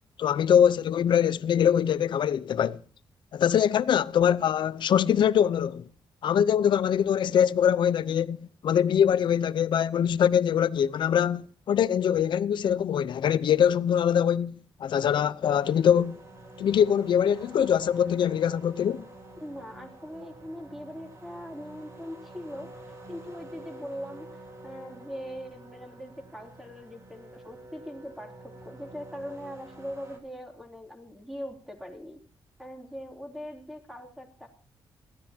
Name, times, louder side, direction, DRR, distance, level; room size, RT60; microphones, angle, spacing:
voice 1, 0.2-2.8 3.3-5.9 6.2-8.4 8.6-16.2 16.6-19.1, left 8 dB, 70° left, 0.8 m, -23 dB
sound 1, 15.4-30.2, right 1 dB, 35° right, 3.9 m, -48 dB
voice 2, 19.4-32.2 32.6-34.5, equal, ahead, 3.2 m, -41 dB
20.5 x 15.0 x 2.9 m
cardioid pair, 120°, 8 cm